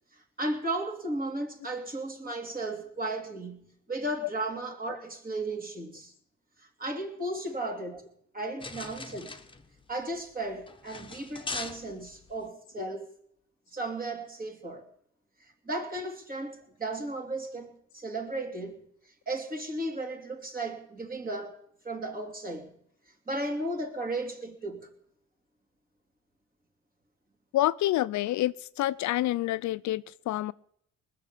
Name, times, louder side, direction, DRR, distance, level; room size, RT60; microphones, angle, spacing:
voice 1, 0.4-6.1 6.8-8.1 8.3-9.4 9.9-13.1 13.7-14.9 15.4-18.8 19.3-21.5 21.8-22.8 23.3-24.9, right 2 dB, 30° right, 2.9 m, -35 dB
sound 1, 8.6-12.5, left 3 dB, 15° left, 1.1 m, -41 dB
voice 2, 27.5-30.5, left 15 dB, 70° left, 0.5 m, -28 dB
20.0 x 6.6 x 8.3 m
cardioid pair, 90°, 30 cm